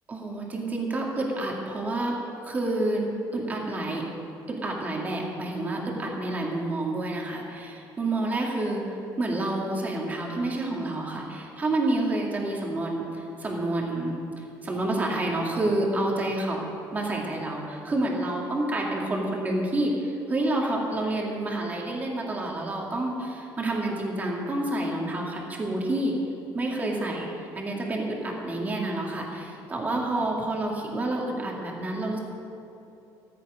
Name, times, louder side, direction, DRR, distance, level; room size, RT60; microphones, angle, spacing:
voice 1, 0.1-2.2 2.4-3.1 3.3-4.0 4.5-16.6 16.9-26.2 26.5-27.3 27.5-32.2, right 2 dB, 20° right, -1 dB, 2.3 m, -29 dB
14.5 x 13.5 x 5.0 m, 2.9 s
cardioid pair, 155°, 8 cm